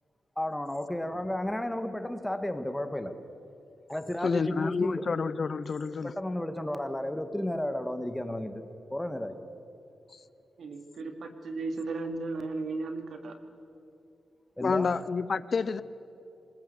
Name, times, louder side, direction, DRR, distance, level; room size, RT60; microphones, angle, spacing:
voice 1, 0.4-3.2 3.9-5.1 6.0-8.6 8.9-9.4 14.6-15.0, left 1 dB, 10° left, 1.7 m, -33 dB
voice 2, 4.2-6.1 14.6-15.8, left 5 dB, 50° left, 0.6 m, -29 dB
voice 3, 10.6-13.4, right 3 dB, 70° right, 2.4 m, -35 dB
26.5 x 20.0 x 7.9 m
cardioid pair, 90°, 0 cm